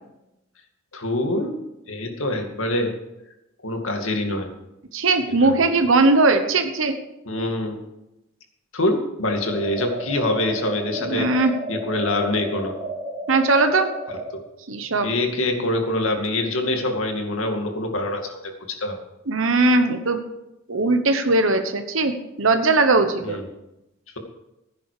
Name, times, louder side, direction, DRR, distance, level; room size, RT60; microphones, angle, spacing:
voice 1, 0.9-1.5 1.9-2.9 3.6-4.5 5.3-5.7 7.3-7.8 8.7-11.3 11.7-12.8 14.1-14.4 15.0-19.0 23.2-23.5, left 1 dB, 80° left, 4 dB, 2.3 m, -25 dB
voice 2, 4.9-7.0 11.0-11.5 13.3-13.9 14.7-15.1 19.3-20.2 20.7-23.4, right 3 dB, 75° right, 7 dB, 1.1 m, -19 dB
sound 1, 9.3-14.3, right 1 dB, 20° right, 4.3 m, -32 dB
16.0 x 9.9 x 5.0 m, 0.91 s
head